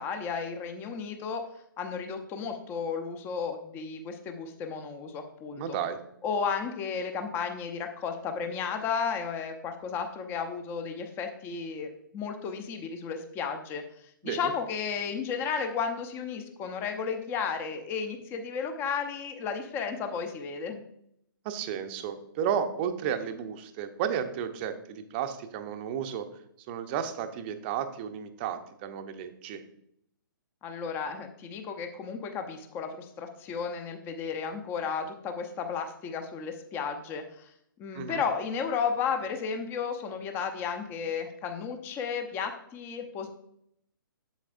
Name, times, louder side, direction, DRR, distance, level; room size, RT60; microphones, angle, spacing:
voice 1, 0.0-1.4 1.8-5.8 6.2-13.8 14.2-20.8 30.6-37.5 37.8-43.3, left 6 dB, 20° left, 6 dB, 0.7 m, -33 dB
voice 2, 5.6-6.0 14.2-14.5 21.4-26.3 26.7-29.6 37.9-38.2, right 8 dB, 30° right, 8 dB, 0.7 m, -33 dB
8.1 x 7.6 x 2.5 m, 0.72 s
figure-of-eight pair, 125°, 12 cm